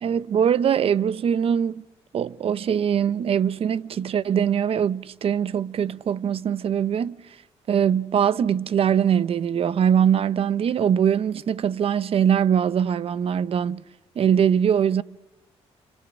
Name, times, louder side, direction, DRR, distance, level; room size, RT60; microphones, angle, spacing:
voice 1, 0.0-1.8 2.1-7.2 7.7-13.8 14.2-15.0, right 8 dB, 55° right, 0.8 m, -22 dB
28.5 x 26.5 x 6.3 m
cardioid pair, 105°, 12 cm